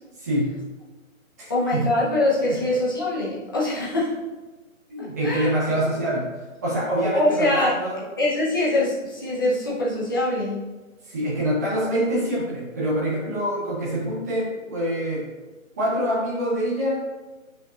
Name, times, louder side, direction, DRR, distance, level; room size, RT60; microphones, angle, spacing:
voice 1, 0.2-0.6 1.4-1.9 2.5-2.6 4.9-6.3 6.6-8.0 11.0-15.3 15.8-17.0, equal, 10° right, -7 dB, 0.9 m, -25 dB
voice 2, 1.5-4.2 5.0-5.6 7.1-7.7 8.2-10.6, left 1 dB, 15° left, -7 dB, 0.8 m, -23 dB
8.6 x 5.2 x 2.5 m, 1.2 s
hypercardioid pair, 170°, 41 cm